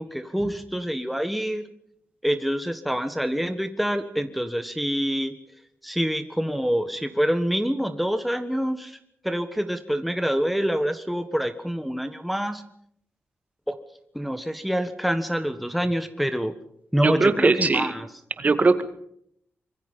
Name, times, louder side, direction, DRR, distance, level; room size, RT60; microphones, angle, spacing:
voice 1, 0.0-1.7 2.2-5.3 5.8-9.0 9.2-12.6 13.7-13.8 14.1-16.5 16.9-18.1, equal, ahead, 8 dB, 1.4 m, -26 dB
voice 2, 17.0-17.9 18.4-18.8, right 4 dB, 35° right, 9 dB, 2.0 m, -20 dB
25.5 x 23.0 x 5.5 m, 0.70 s
wide cardioid pair, 110°, 4 cm